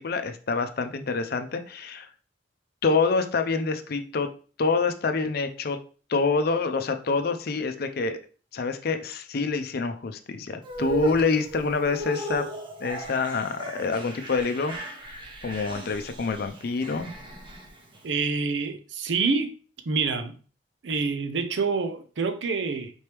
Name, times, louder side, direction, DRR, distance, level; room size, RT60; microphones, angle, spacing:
voice 1, 0.0-2.1 2.8-4.3 4.6-5.8 6.1-8.2 8.5-12.5 12.8-14.8 15.1-17.1, left 4 dB, 60° left, 0.5 m, -26 dB
sound 1, 10.6-18.0, right 2 dB, 30° right, 0.8 m, -36 dB
voice 2, 18.0-19.5 19.9-20.3 20.8-22.9, right 4 dB, 80° right, 0.5 m, -27 dB
4.3 x 3.0 x 3.3 m
head